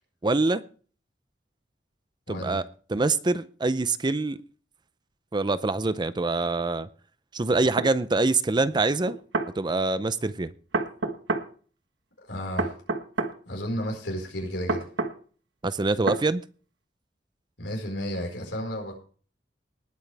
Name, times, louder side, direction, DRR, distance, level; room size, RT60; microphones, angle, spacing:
voice 1, 0.2-0.6 2.3-2.6 2.9-4.4 5.3-6.9 7.3-9.2 9.6-10.5 15.6-16.4, right 3 dB, 25° right, 0.5 m, -25 dB
voice 2, 2.3-2.6 12.2-12.8 13.5-14.9 17.6-19.0, equal, 90° left, 4.7 m, -32 dB
sound 1, 7.8-7.9 9.1-9.5 10.7-11.5 12.6-13.3 14.7-15.2 16.1-16.2, right 3 dB, 90° right, 1.4 m, -27 dB
19.5 x 9.0 x 3.4 m
head